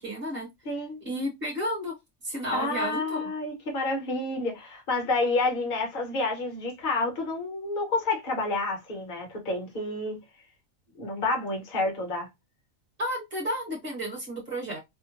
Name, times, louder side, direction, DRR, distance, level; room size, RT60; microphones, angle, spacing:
voice 1, 0.0-0.5 1.0-1.9 2.2-3.2 13.0-14.8, equal, 45° right, 1.2 m, -32 dB
voice 2, 0.6-1.0 2.5-10.2 11.0-12.3, left 2 dB, 40° left, 1.0 m, -29 dB
2.8 x 2.1 x 2.8 m
omnidirectional pair, 1.4 m